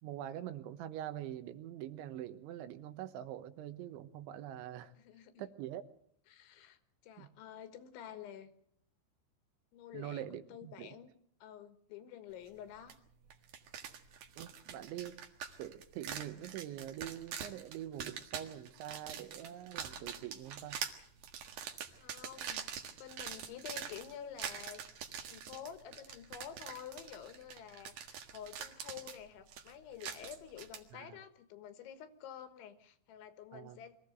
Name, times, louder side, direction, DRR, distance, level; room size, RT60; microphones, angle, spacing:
voice 1, 0.0-4.9 5.4-5.8 7.2-7.3 9.9-11.0 14.4-15.2 15.6-20.8 30.9-31.2 33.5-33.8, right 12 dB, 80° right, 11 dB, 3.5 m, -44 dB
voice 2, 5.0-5.5 6.3-8.5 9.7-11.1 11.4-13.0 22.0-22.7 23.0-24.9 25.2-34.0, left 9 dB, 80° left, 10 dB, 3.8 m, -49 dB
sound 1, 12.9-13.0 13.3-30.8, right 8 dB, 60° right, 3.0 m, -45 dB
24.0 x 15.5 x 7.9 m, 0.67 s
omnidirectional pair, 5.4 m